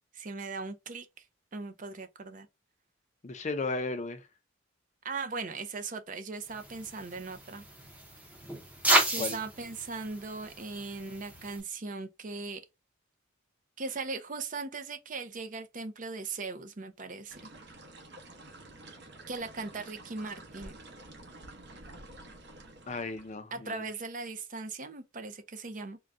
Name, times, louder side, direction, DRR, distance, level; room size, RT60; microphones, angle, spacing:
voice 1, 0.1-1.2 1.5-2.5 5.0-7.6 9.1-12.6 13.8-17.4 19.3-20.7 23.5-26.0, right 4 dB, 40° right, 0.5 m, -39 dB
voice 2, 3.2-4.2 9.2-9.4 22.9-23.8, left 3 dB, 35° left, 0.5 m, -34 dB
sound 1, 6.5-11.6, right 1 dB, 5° right, 0.7 m, -32 dB
sound 2, 17.3-23.3, right 2 dB, 60° right, 1.1 m, -50 dB
3.8 x 2.2 x 3.6 m
head